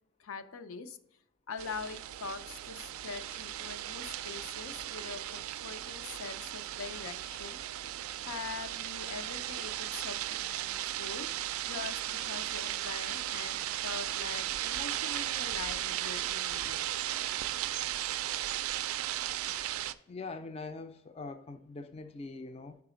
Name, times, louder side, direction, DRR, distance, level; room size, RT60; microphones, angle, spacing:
voice 1, 0.2-1.0 1.5-7.6 8.2-11.3 11.7-16.9, left 4 dB, 85° left, 0.5 m, -43 dB
sound 1, 1.6-19.9, right 13 dB, 85° right, 0.3 m, -36 dB
voice 2, 20.1-22.8, left 3 dB, 30° left, 0.3 m, -43 dB
4.9 x 4.7 x 4.9 m
head